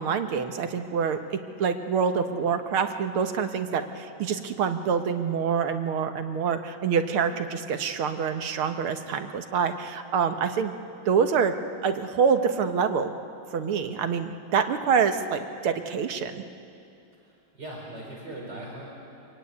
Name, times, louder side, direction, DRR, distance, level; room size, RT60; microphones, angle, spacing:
voice 1, 0.0-10.7 11.1-11.5 11.8-13.1 13.5-16.4, right 6 dB, 85° right, 7 dB, 2.1 m, -26 dB
voice 2, 17.2-18.9, right 1 dB, 55° right, -3 dB, 5.2 m, -40 dB
25.5 x 22.5 x 9.6 m, 2.7 s
omnidirectional pair, 2.3 m